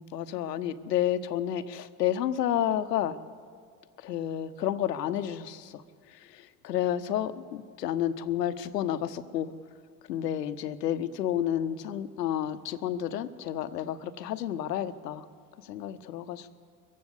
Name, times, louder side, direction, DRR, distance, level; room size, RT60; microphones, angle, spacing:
voice 1, 0.0-3.2 4.0-5.8 6.1-9.5 10.1-15.3 15.6-16.6, left 11 dB, 75° left, 14 dB, 0.9 m, -31 dB
22.5 x 15.0 x 8.2 m, 2.2 s
figure-of-eight pair, 60°, 49 cm